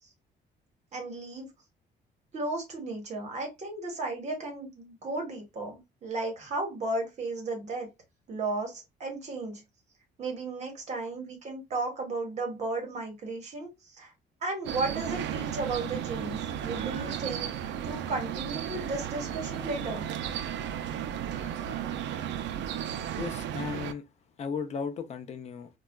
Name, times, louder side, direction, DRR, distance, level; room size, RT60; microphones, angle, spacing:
voice 1, 0.9-1.5 2.3-7.9 8.3-9.6 10.2-14.1 14.4-17.6 17.8-20.1, right 2 dB, 40° right, 1.1 m, -34 dB
sound 1, 14.6-23.9, right 9 dB, 85° right, 0.4 m, -34 dB
voice 2, 23.2-24.0 24.4-25.7, left 6 dB, 40° left, 0.5 m, -35 dB
3.9 x 2.3 x 2.2 m
cardioid pair, 165°, 18 cm